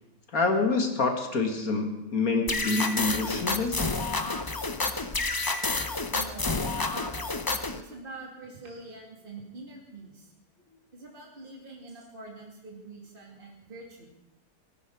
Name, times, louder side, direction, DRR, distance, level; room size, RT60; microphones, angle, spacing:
voice 1, 0.3-3.9, left 3 dB, 70° left, 4 dB, 2.3 m, -27 dB
sound 1, 2.5-7.8, left 3 dB, 30° left, 0.4 m, -29 dB
voice 2, 6.1-7.4 7.7-10.3 10.6-14.1, right 2 dB, 35° right, -2 dB, 2.9 m, -45 dB
18.5 x 15.5 x 4.8 m, 0.93 s
omnidirectional pair, 1.6 m